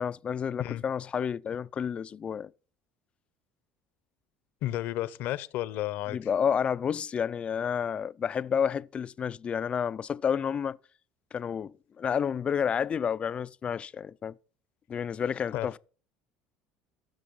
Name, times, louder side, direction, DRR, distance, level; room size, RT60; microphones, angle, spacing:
voice 1, 0.0-2.5 6.1-10.8 11.3-14.4 14.9-15.8, left 7 dB, 35° left, 0.4 m, -30 dB
voice 2, 4.6-6.2 15.5-15.8, left 14 dB, 65° left, 0.8 m, -32 dB
14.5 x 6.2 x 5.5 m
supercardioid pair, 90°, 3 cm